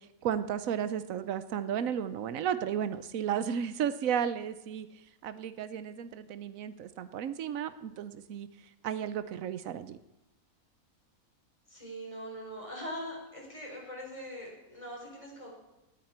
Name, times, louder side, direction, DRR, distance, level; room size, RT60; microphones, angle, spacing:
voice 1, 0.2-4.9 5.2-8.5 8.8-10.0, right 8 dB, 70° right, 13 dB, 1.2 m, -33 dB
voice 2, 11.7-15.5, equal, 20° left, -2 dB, 4.1 m, -42 dB
18.0 x 9.5 x 4.4 m, 0.94 s
omnidirectional pair, 1.5 m